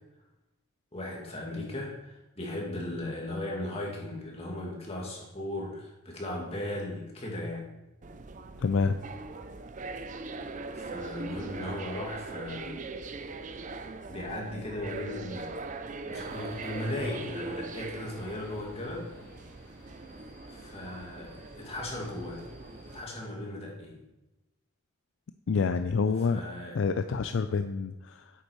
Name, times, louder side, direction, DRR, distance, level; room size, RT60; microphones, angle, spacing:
voice 1, 0.9-7.7 10.7-12.8 13.6-15.8 16.0-19.1 20.5-22.5 22.8-24.0 26.3-26.8, left 1 dB, 30° left, -2 dB, 2.4 m, -37 dB
sound 1, 8.0-23.0, right 3 dB, 35° right, 0.5 m, -41 dB
voice 2, 8.6-9.0 25.5-26.4 26.7-28.3, left 5 dB, 60° left, 9 dB, 0.4 m, -27 dB
Subway metro underground, 16.1-23.0, right 1 dB, 10° left, 2.4 m, -54 dB
8.6 x 8.4 x 4.7 m, 0.97 s
head